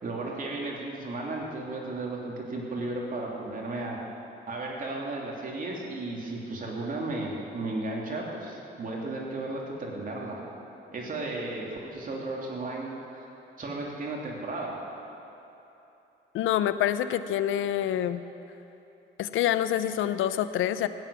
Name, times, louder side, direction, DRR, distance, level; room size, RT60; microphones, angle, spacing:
voice 1, 0.0-4.0 4.5-10.4 10.9-13.3 13.6-14.8, right 2 dB, 45° right, -2 dB, 2.9 m, -34 dB
voice 2, 16.3-18.2 19.2-20.9, left 11 dB, 85° left, 13 dB, 0.6 m, -26 dB
15.5 x 9.5 x 7.0 m, 3.0 s
cardioid pair, 90°, 20 cm